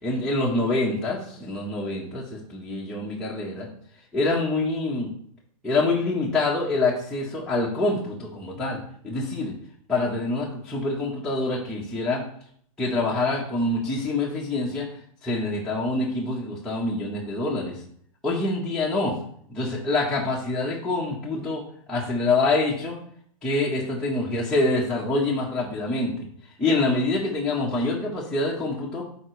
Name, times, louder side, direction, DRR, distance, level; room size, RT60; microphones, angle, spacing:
voice 1, 0.0-3.7 4.1-5.1 5.6-9.5 9.9-12.2 12.8-14.9 15.2-17.8 18.2-19.1 19.5-21.6 21.9-22.9 23.4-26.2 26.6-29.0, left 2 dB, 5° left, -8 dB, 1.6 m, -26 dB
8.5 x 4.0 x 3.4 m, 0.62 s
hypercardioid pair, 130°, 18 cm